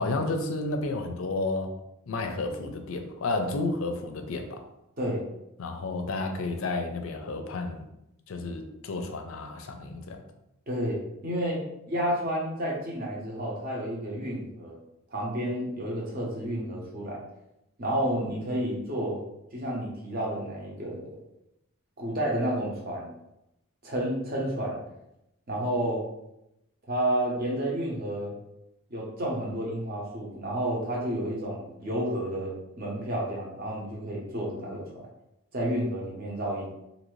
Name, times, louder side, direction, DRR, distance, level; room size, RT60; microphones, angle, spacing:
voice 1, 0.0-1.7 2.1-4.6 5.6-7.8 8.3-10.2, left 2 dB, 70° left, 6 dB, 0.4 m, -31 dB
voice 2, 10.7-11.6 11.9-14.8 15.1-17.2 17.8-19.2 19.5-21.1 22.0-23.1 23.8-24.8 25.5-26.0 26.9-28.3 28.9-34.9 35.5-36.7, right 1 dB, 40° right, -3 dB, 0.8 m, -30 dB
2.7 x 2.6 x 3.0 m, 0.86 s
head